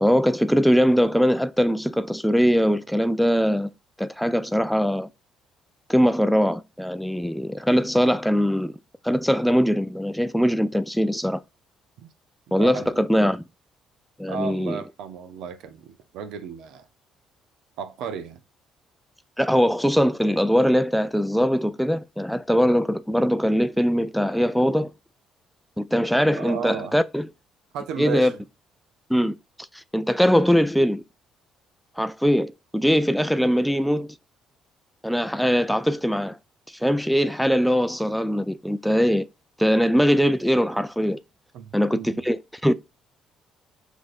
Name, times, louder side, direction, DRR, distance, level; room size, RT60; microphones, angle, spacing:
voice 1, 0.0-3.7 4.0-5.1 5.9-8.8 9.0-11.4 12.5-13.4 14.2-14.8 19.4-24.9 25.8-27.3 28.0-28.3 29.1-29.3 29.7-31.0 32.0-34.1 35.0-36.4 36.8-39.3 39.6-41.2 41.7-42.7, equal, ahead, 0.3 m, -21 dB
voice 2, 12.6-13.0 14.3-16.9 17.8-18.4 26.4-27.0 27.7-28.4 41.5-42.2, right 6 dB, 65° right, 0.5 m, -34 dB
6.0 x 2.6 x 2.4 m
hypercardioid pair, 50°, 0 cm